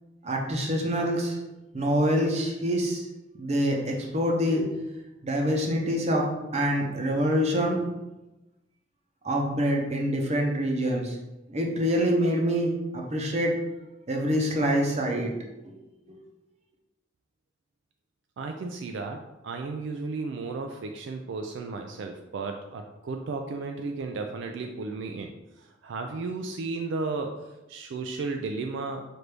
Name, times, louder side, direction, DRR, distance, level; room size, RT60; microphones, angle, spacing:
voice 1, 0.2-1.4 1.7-3.0 3.4-4.7 5.2-6.3 6.5-7.8 9.2-11.2 11.5-13.5 14.1-15.3 15.6-15.7 16.1-16.2, equal, 35° right, 0 dB, 0.7 m, -25 dB
voice 2, 18.4-27.4 27.7-29.0, right 3 dB, 70° right, 4 dB, 0.4 m, -34 dB
5.9 x 2.6 x 3.3 m, 1.0 s
head